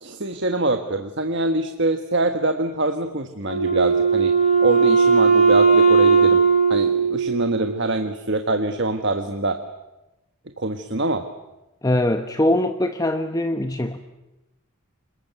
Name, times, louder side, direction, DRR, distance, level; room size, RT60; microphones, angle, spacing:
voice 1, 0.0-4.3 4.6-6.4 6.7-9.6 10.6-11.3, right 2 dB, 50° right, 6 dB, 1.4 m, -24 dB
Wind instrument woodwind instrument, 3.5-7.9, right 5 dB, 30° left, 6.6 m, -17 dB
voice 2, 11.8-14.0, left 1 dB, 15° left, 7 dB, 0.9 m, -22 dB
27.0 x 21.0 x 9.3 m, 0.99 s
head